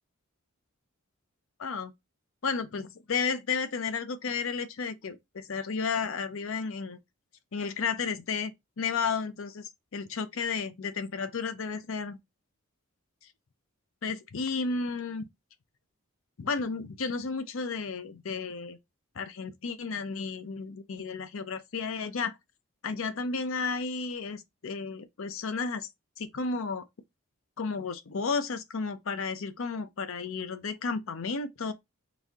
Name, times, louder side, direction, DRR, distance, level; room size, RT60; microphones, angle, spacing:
voice 1, 1.6-1.9 2.4-7.0 7.5-12.2 14.0-15.3 16.4-18.8 19.2-22.4 22.8-25.9 26.2-26.9 27.6-31.7, left 5 dB, 65° left, 0.6 m, -33 dB
4.1 x 2.7 x 3.5 m
head